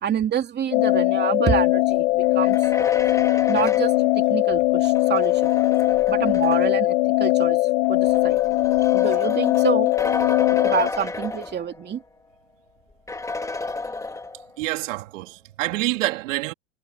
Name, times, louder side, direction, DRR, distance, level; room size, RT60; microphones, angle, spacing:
voice 1, 0.0-2.6 3.5-5.5 6.1-7.6 7.9-8.4 8.9-9.9 10.6-12.0, right 9 dB, 25° right, 2.7 m, -27 dB
sound 1, 0.7-10.9, left 18 dB, 65° left, 1.2 m, -20 dB
sound 2, 2.2-6.9 7.8-12.0 12.3-12.4 13.1-14.6, left 3 dB, 10° left, 2.3 m, -33 dB
voice 2, 14.6-16.5, right 19 dB, 70° right, 2.7 m, -27 dB
hypercardioid pair, 115°, 40 cm